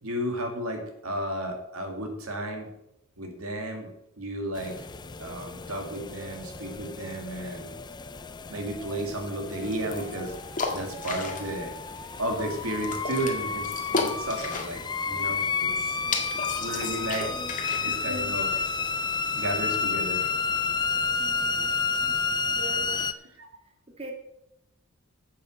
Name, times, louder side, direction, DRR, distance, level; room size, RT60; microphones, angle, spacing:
voice 1, 0.0-2.7 3.2-3.9 4.2-4.8 5.2-7.7 8.5-10.3 10.7-11.7 12.2-16.0 16.6-17.3 17.8-18.7 19.4-20.3 23.4-23.5, right 1 dB, 70° right, 3 dB, 2.4 m, -33 dB
sound 1, 4.5-23.1, left 5 dB, 20° left, 0.4 m, -31 dB
sound 2, 9.5-20.0, left 4 dB, 35° left, 1.7 m, -36 dB
voice 2, 17.0-17.5 21.2-21.7 22.4-23.1 24.0-24.1, equal, 25° right, 2 dB, 2.0 m, -42 dB
10.0 x 7.5 x 6.6 m, 0.83 s
head